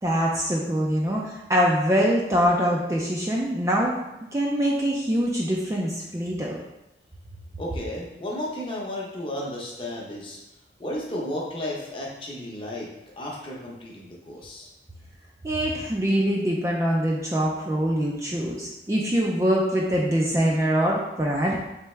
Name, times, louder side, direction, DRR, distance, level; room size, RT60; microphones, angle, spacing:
voice 1, 0.0-3.9 4.3-6.6 15.4-21.6, equal, 15° right, -2 dB, 0.4 m, -24 dB
voice 2, 7.6-10.4 10.8-12.9 13.2-14.7, left 1 dB, 30° left, -3 dB, 0.7 m, -33 dB
3.8 x 3.4 x 3.2 m, 0.93 s
head